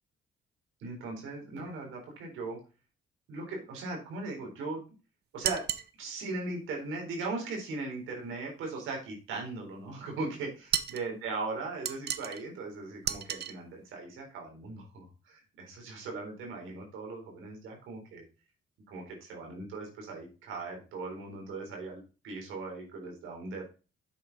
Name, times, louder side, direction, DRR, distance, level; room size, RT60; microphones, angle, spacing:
voice 1, 0.8-2.6 3.3-4.8 5.3-5.7 6.0-18.2 18.9-23.7, right 3 dB, 85° right, 1 dB, 4.0 m, -39 dB
sound 1, 5.4-5.9 10.7-11.1 11.9-12.4 13.0-13.5, right 9 dB, 55° right, 0.8 m, -32 dB
8.3 x 6.6 x 4.0 m, 0.32 s
cardioid pair, 90°, 20 cm